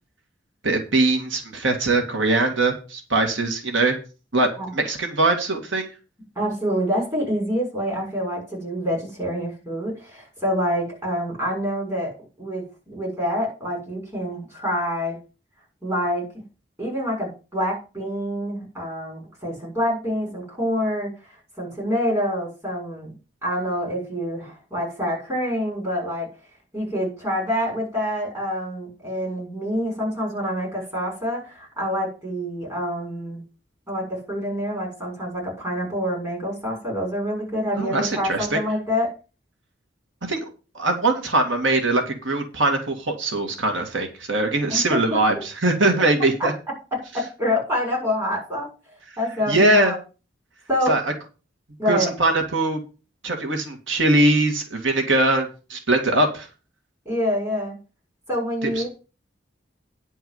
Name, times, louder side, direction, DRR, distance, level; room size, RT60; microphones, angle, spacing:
voice 1, 0.6-4.0 4.3-5.9 37.8-38.6 40.3-40.5 40.7-46.5 49.5-50.0 50.9-51.0 51.9-52.8 53.2-56.5 58.6-58.9, right 2 dB, 80° right, 4 dB, 2.2 m, -21 dB
voice 2, 6.3-15.2 15.8-16.3 16.8-23.1 23.4-26.3 26.7-33.4 33.9-39.1 44.7-45.2 46.9-49.9 50.7-50.9 51.8-52.1 57.0-57.8 58.3-58.9, equal, 15° right, -2 dB, 6.7 m, -27 dB
10.5 x 4.7 x 7.9 m, 0.33 s
head